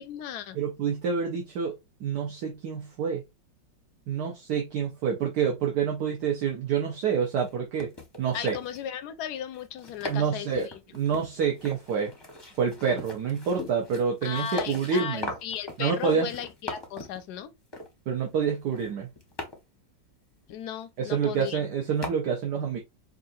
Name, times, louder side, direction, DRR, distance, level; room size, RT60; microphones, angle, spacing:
voice 1, 0.0-0.6 8.3-10.8 14.2-17.5 20.5-21.6, left 9 dB, 70° left, 1.0 m, -36 dB
voice 2, 0.5-3.2 4.1-7.9 8.2-8.5 10.1-10.7 10.9-12.1 12.6-15.3 15.8-16.3 18.1-19.1 21.0-22.8, right 6 dB, 65° right, 1.4 m, -27 dB
sound 1, 7.2-7.5 7.8-8.9 9.5-10.3 10.6-17.2 17.7-17.9 18.6-19.6 21.0-21.1 21.4-21.6 22.0-22.1, left 2 dB, 20° left, 0.7 m, -39 dB
5.5 x 2.5 x 2.6 m
omnidirectional pair, 2.0 m